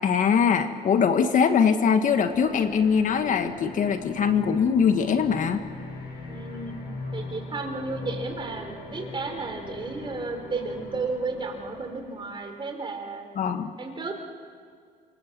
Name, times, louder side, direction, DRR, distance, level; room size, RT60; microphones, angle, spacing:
voice 1, 0.0-5.6 13.3-13.7, left 6 dB, 50° left, 8 dB, 1.6 m, -22 dB
sound 1, 2.0-12.5, left 2 dB, 80° left, 7.8 m, -40 dB
voice 2, 6.3-6.8 7.1-13.3 13.8-14.2, right 3 dB, 30° right, 4 dB, 4.4 m, -33 dB
27.0 x 25.5 x 7.6 m, 2.2 s
cardioid pair, 110°, 17 cm